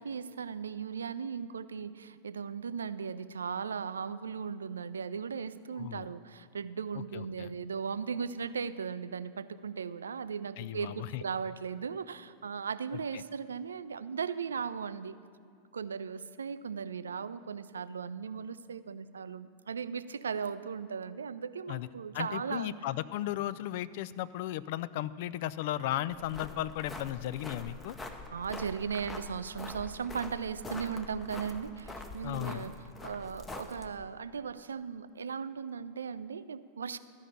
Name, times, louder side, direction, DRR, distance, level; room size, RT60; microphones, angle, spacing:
voice 1, 0.0-15.2 15.7-22.7 28.3-32.8 33.0-37.0, right 6 dB, 70° right, 15 dB, 0.4 m, -37 dB
voice 2, 5.8-6.1 6.9-7.5 10.6-11.2 13.1-13.2 21.7-21.9 22.1-28.0 32.2-32.7, left 13 dB, 50° left, 15 dB, 0.3 m, -35 dB
sound 1, 26.1-34.0, left 2 dB, 15° left, 0.9 m, -45 dB
13.5 x 5.6 x 8.6 m, 2.4 s
figure-of-eight pair, 90°, 0 cm